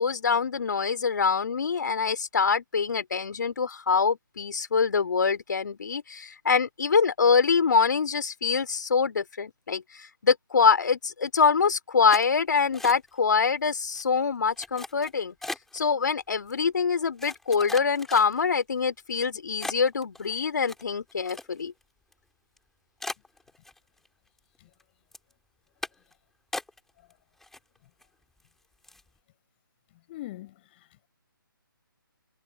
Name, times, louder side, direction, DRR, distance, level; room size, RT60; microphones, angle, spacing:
voice 1, 0.0-15.3 15.7-21.7, left 5 dB, 55° left, 3.5 m, -25 dB
sound 1, 12.1-13.3 13.6-14.0 14.6-15.8 16.5-16.6 17.2-18.6 19.1-19.2 19.6-21.8 22.1-22.2 22.6-22.7 23.0-24.1 24.4-24.8 25.1-25.3 25.8-26.1 26.5-27.1 27.4-28.0 28.4-28.5 28.8-29.1, left 2 dB, 5° left, 7.3 m, -39 dB
voice 2, 30.1-31.1, left 16 dB, 30° left, 6.0 m, -42 dB
figure-of-eight pair, 140°, 12 cm